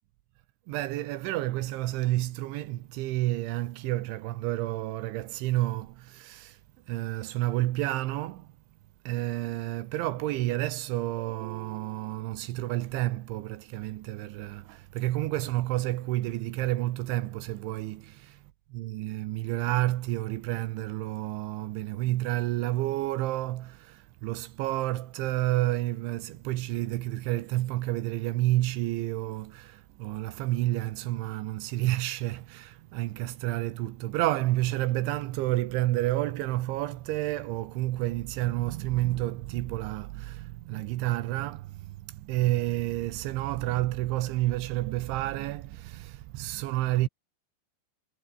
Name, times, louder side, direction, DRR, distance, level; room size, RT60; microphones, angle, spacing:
voice 1, 0.7-6.6 6.9-8.5 9.1-18.4 18.7-47.1, right 16 dB, 85° right, 3.5 m, -30 dB
omnidirectional pair, 5.3 m